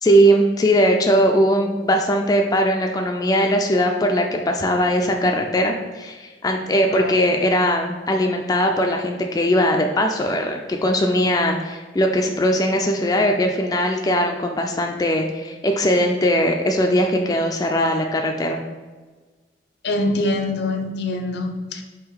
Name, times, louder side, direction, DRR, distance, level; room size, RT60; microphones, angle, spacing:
voice 1, 0.0-18.6, equal, 20° left, 2 dB, 0.3 m, -20 dB
voice 2, 19.8-21.8, left 2 dB, 65° left, 4 dB, 0.6 m, -24 dB
3.7 x 3.0 x 4.5 m, 1.3 s
head